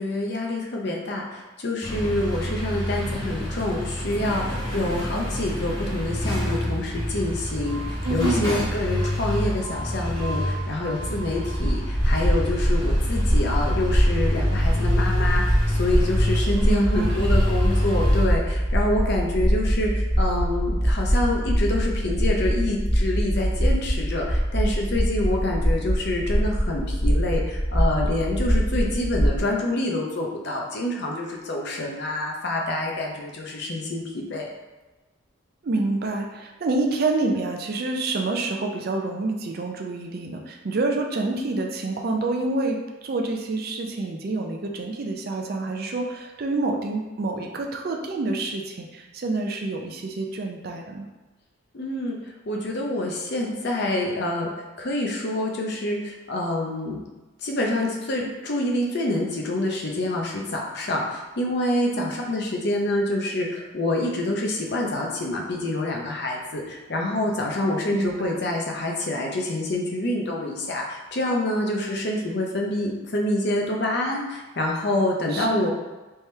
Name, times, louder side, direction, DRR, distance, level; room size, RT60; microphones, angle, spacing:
voice 1, 0.0-34.5 51.7-52.2 52.5-54.5 54.8-57.0 57.4-75.7, left 1 dB, 50° left, 0 dB, 0.6 m, -27 dB
sound 1, 1.8-18.2, equal, 20° left, 0.9 m, -28 dB
voice 2, 8.0-8.5 16.7-17.2 35.6-51.1 62.0-62.1 67.9-68.4 75.3-75.7, right 2 dB, 45° right, 2 dB, 0.4 m, -27 dB
sound 2, 11.5-29.4, equal, 10° right, 0.8 m, -23 dB
3.5 x 2.9 x 3.2 m, 1.2 s
head